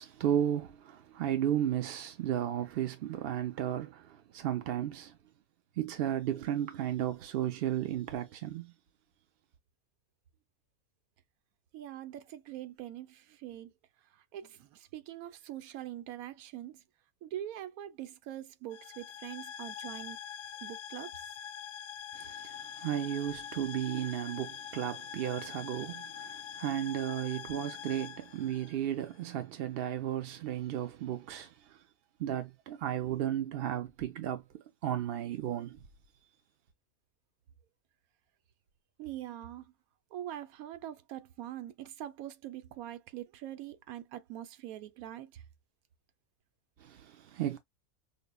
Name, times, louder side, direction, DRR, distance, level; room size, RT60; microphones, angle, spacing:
voice 1, 0.0-5.2 5.8-8.7 22.1-31.8 32.2-35.8 46.8-47.6, right 11 dB, 65° right, 0.6 m, -34 dB
voice 2, 11.7-13.7 14.3-16.8 17.2-20.2 20.6-21.1 39.0-39.7 40.1-45.4, right 12 dB, 85° right, 1.1 m, -43 dB
sound 1, 18.7-29.2, left 8 dB, 65° left, 0.7 m, -44 dB
5.4 x 2.1 x 2.2 m
omnidirectional pair, 1.5 m